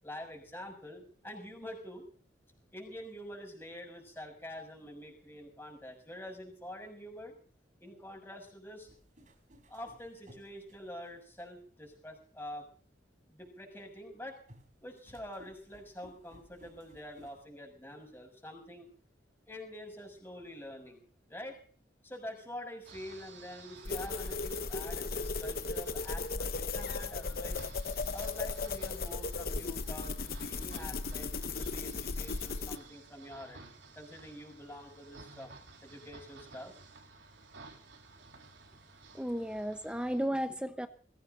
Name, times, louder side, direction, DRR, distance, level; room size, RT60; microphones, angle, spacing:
voice 1, 0.0-2.0 2.7-7.3 7.8-8.9 9.7-12.6 13.3-14.4 14.8-18.9 19.5-21.0 21.3-21.6 22.0-27.7 28.1-31.3 31.6-33.7 33.9-35.5 35.8-36.7, left 1 dB, 10° left, 6.8 m, -46 dB
sound 1, 8.9-11.4 12.1-12.2 14.5-17.4, equal, 40° right, 4.1 m, -59 dB
sound 2, 22.8-40.3, right 3 dB, 75° right, 3.9 m, -54 dB
sound 3, 23.8-32.8, left 4 dB, 50° left, 1.0 m, -36 dB
voice 2, 39.1-40.9, equal, 5° right, 1.0 m, -34 dB
22.0 x 16.5 x 4.0 m
head